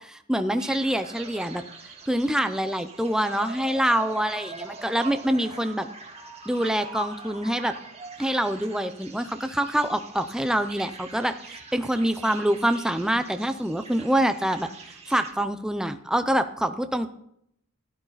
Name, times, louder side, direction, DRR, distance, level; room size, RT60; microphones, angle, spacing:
voice 1, 0.0-1.6 2.1-5.9 6.5-7.7 8.2-14.7 15.1-17.1, right 1 dB, 5° right, 9 dB, 0.5 m, -25 dB
sound 1, 0.6-15.3, right 3 dB, 30° right, 1.8 m, -43 dB
15.0 x 11.5 x 4.1 m, 0.74 s
head